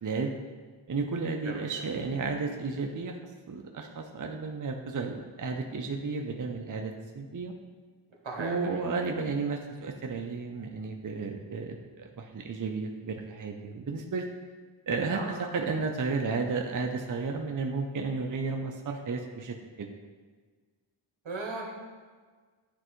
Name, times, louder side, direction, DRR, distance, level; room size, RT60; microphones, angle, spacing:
voice 1, 0.0-0.3 0.9-3.2 3.5-7.5 8.4-14.2 14.9-20.0, right 4 dB, 45° right, 3 dB, 0.5 m, -33 dB
voice 2, 1.4-1.9 8.2-8.8 15.0-15.5 21.2-21.7, right 2 dB, 80° right, 0 dB, 1.1 m, -38 dB
9.8 x 3.3 x 3.1 m, 1.5 s
wide cardioid pair, 75°, 46 cm